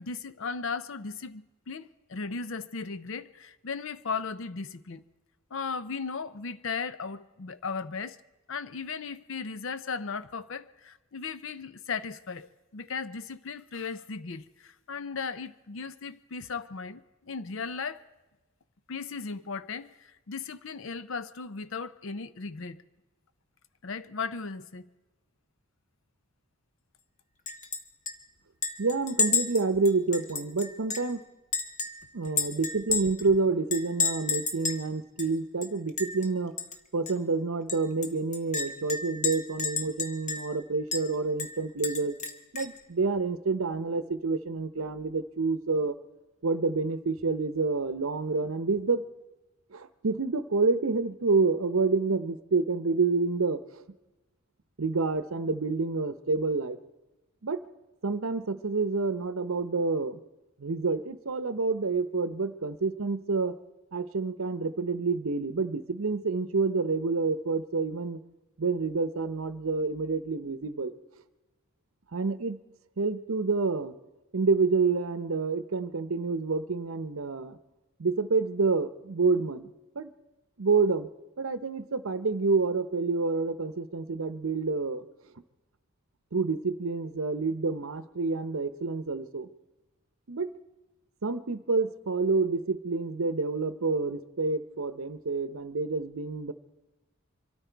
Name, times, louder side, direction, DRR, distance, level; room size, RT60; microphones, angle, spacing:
voice 1, 0.0-5.0 5.5-8.2 8.5-18.0 18.9-22.8 23.8-24.9, left 5 dB, 60° left, 0.6 m, -36 dB
Chink clink, 27.5-27.8 28.1-28.2 28.6-31.1 31.5-33.3 33.7-34.8 35.2-35.3 35.6-36.3 36.6-36.8 37.1-37.2 37.7-40.6 40.9-41.0 41.4-42.8, left 4 dB, 35° left, 1.0 m, -31 dB
voice 2, 28.8-31.2 32.1-36.5 36.9-42.2 42.5-46.0 46.4-49.0 49.7-53.8 54.8-56.8 57.4-57.6 58.0-60.2 60.6-63.6 63.9-68.2 68.6-70.9 72.1-72.6 73.0-74.0 74.3-77.6 78.0-79.7 79.9-80.1 80.6-81.1 81.4-85.0 86.3-89.5 90.3-90.5 91.2-96.5, right 4 dB, 70° right, 0.7 m, -28 dB
24.0 x 13.0 x 4.6 m
head